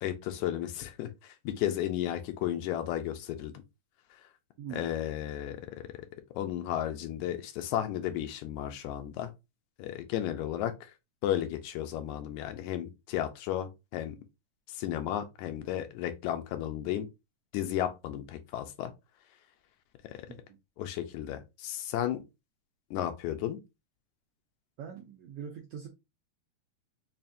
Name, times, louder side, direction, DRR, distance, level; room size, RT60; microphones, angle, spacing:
voice 1, 0.0-3.5 4.7-5.8 6.3-9.3 9.8-10.9 11.2-14.2 14.7-17.1 17.5-18.9 20.8-22.2 22.9-23.6, left 11 dB, 85° left, 1.9 m, -33 dB
voice 2, 4.6-4.9 20.3-20.6 24.8-25.9, right 8 dB, 80° right, 1.4 m, -43 dB
5.5 x 2.4 x 2.5 m
omnidirectional pair, 3.4 m